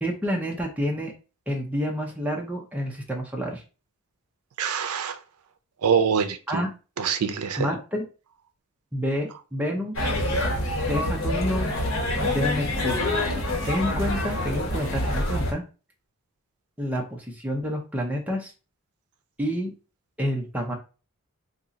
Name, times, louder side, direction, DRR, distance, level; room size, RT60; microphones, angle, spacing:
voice 1, 0.0-1.1 1.5-3.6 6.5-6.7 7.6-8.0 8.9-10.0 10.9-11.7 12.2-13.2 13.7-15.6 16.8-18.5 19.4-19.7 20.2-20.7, equal, 5° right, 0.6 m, -28 dB
voice 2, 4.6-5.2 5.8-6.6 7.0-7.7, right 6 dB, 90° right, 0.5 m, -24 dB
sound 1, 10.0-15.5, left 1 dB, 70° left, 1.3 m, -26 dB
2.7 x 2.4 x 3.9 m
head